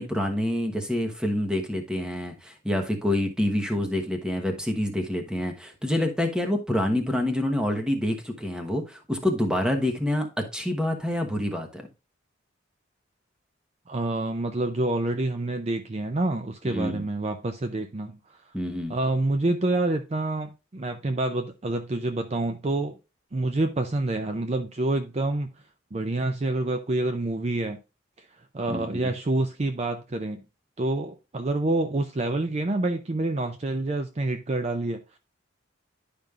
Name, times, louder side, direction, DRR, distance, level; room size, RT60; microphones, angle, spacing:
voice 1, 0.0-11.9 16.6-17.0 18.5-18.9 28.7-29.1, left 1 dB, 5° right, 1.1 m, -27 dB
voice 2, 13.9-18.5 18.9-23.0 23.3-25.5 25.9-27.8 28.2-28.3 28.5-30.4 30.8-35.2, right 2 dB, 35° right, 0.5 m, -27 dB
11.0 x 5.1 x 2.4 m
head